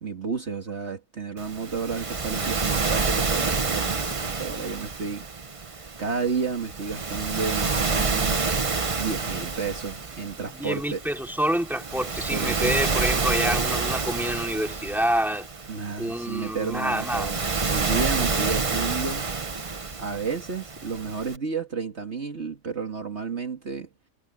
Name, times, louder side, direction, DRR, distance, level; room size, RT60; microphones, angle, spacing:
voice 1, 0.0-5.3 6.0-8.4 9.0-11.0 12.3-13.0 15.7-17.4 17.6-19.3 20.0-23.9, right 5 dB, 60° right, 2.2 m, -31 dB
Waves surf, 1.4-21.4, right 4 dB, 30° right, 0.9 m, -28 dB
voice 2, 10.5-15.5 16.0-17.3, equal, ahead, 3.9 m, -27 dB
omnidirectional pair, 1.3 m